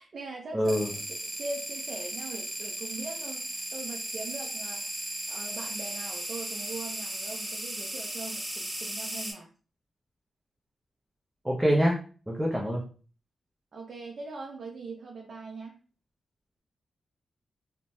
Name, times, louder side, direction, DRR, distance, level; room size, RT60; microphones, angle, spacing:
voice 1, 0.0-9.5 12.5-12.7 13.7-15.8, right 3 dB, 60° right, 0 dB, 0.5 m, -41 dB
voice 2, 0.5-0.9 11.4-12.0 12.3-12.8, equal, 5° right, -3 dB, 0.6 m, -25 dB
sound 1, 0.6-9.3, right 1 dB, 25° right, 1.3 m, -36 dB
2.6 x 2.1 x 3.1 m, 0.38 s
cardioid pair, 90°, 0 cm